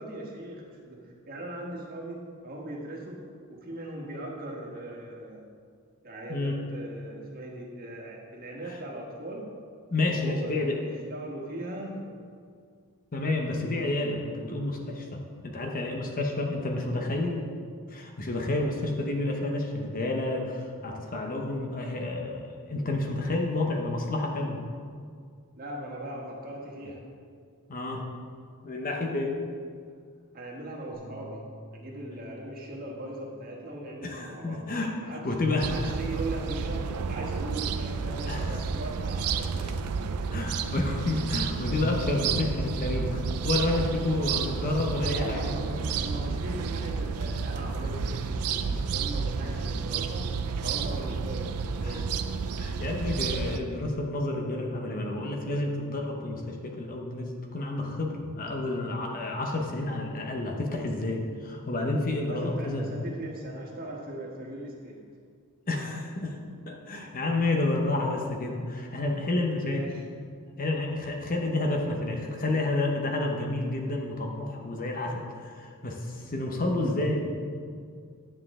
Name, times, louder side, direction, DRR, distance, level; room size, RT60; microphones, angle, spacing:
voice 1, 0.0-3.2 3.5-5.4 6.0-9.5 10.2-12.2 25.6-27.0 30.3-31.4 31.7-34.6 35.0-35.3 35.6-39.7 44.5-44.6 45.1-50.3 50.6-52.1 62.3-65.0 69.6-70.0, right 1 dB, 40° right, -2 dB, 1.5 m, -39 dB
voice 2, 9.9-10.8 13.1-15.1 15.4-17.4 17.9-24.6 27.7-28.0 28.6-29.4 34.0-34.9 35.2-35.9 38.3-38.6 39.6-39.8 40.3-45.5 49.5-49.6 51.8-52.0 52.6-62.9 65.7-66.4 66.7-69.8 70.6-77.3, left 2 dB, 40° left, 1 dB, 0.9 m, -30 dB
sound 1, 30.9-37.2, equal, 80° left, 2.4 m, -53 dB
sound 2, 35.6-53.6, right 5 dB, 80° right, 0.4 m, -31 dB
9.9 x 7.3 x 3.7 m, 2.1 s
head